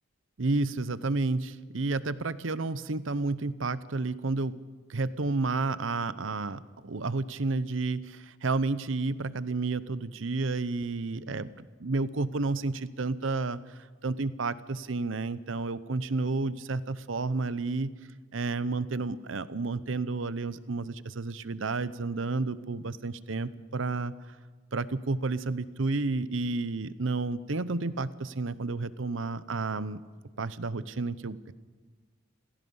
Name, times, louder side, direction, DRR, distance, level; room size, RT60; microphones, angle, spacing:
voice 1, 0.4-4.6 4.9-13.7 14.0-17.9 18.3-24.1 24.7-30.0 30.4-31.5, right 3 dB, 75° right, 15 dB, 0.8 m, -31 dB
28.5 x 16.5 x 5.6 m, 1.4 s
head